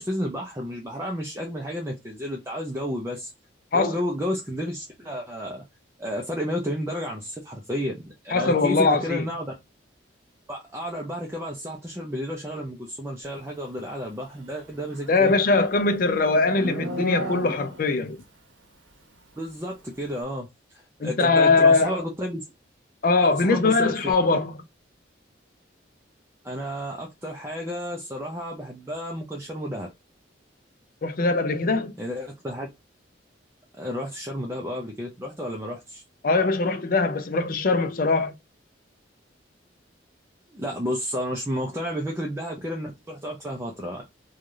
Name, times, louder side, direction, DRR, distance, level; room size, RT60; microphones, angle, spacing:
voice 1, 0.0-3.3 3.7-5.6 6.0-9.5 10.5-15.4 19.4-20.5 21.0-22.4 23.2-24.0 26.4-29.9 32.0-32.7 33.8-36.0 40.5-44.0, equal, 15° right, 0.5 m, -31 dB
voice 2, 8.3-9.2 15.1-18.2 21.0-22.0 23.0-24.5 31.0-31.9 36.2-38.3, left 3 dB, 45° left, 0.5 m, -21 dB
Livestock farm animals working animals, 14.7-18.0, equal, 90° right, 1.0 m, -34 dB
3.3 x 2.3 x 2.5 m
head